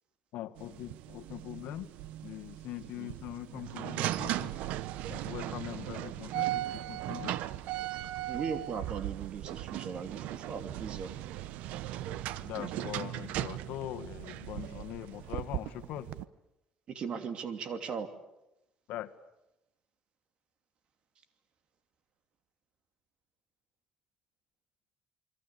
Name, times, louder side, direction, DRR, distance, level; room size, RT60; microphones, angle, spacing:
voice 1, 0.3-1.9 2.2-4.6 5.1-7.4 12.1-16.1 18.9-19.1, left 13 dB, 80° left, 9 dB, 1.7 m, -42 dB
sound 1, 0.6-16.2, right 14 dB, 80° right, 1.0 m, -38 dB
voice 2, 8.3-11.1 12.5-12.8 16.9-18.1, right 6 dB, 45° right, 9 dB, 2.8 m, -38 dB
29.0 x 23.0 x 8.4 m, 0.90 s
cardioid pair, 145°, 2 cm